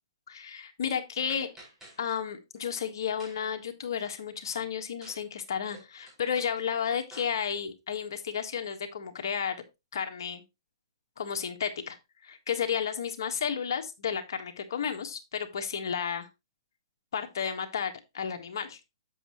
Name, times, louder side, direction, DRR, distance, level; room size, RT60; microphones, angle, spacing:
voice 1, 0.3-1.5 2.0-9.6 9.9-10.4 11.2-12.0 12.2-16.3 17.1-18.8, left 7 dB, 60° left, 5 dB, 1.5 m, -32 dB
sound 1, 1.3-2.2 2.6-2.8 3.2-3.6 5.0-5.2 5.5-7.3, right 1 dB, 10° right, 5.4 m, -51 dB
7.8 x 7.6 x 3.1 m, 0.23 s
hypercardioid pair, 145°, 2 cm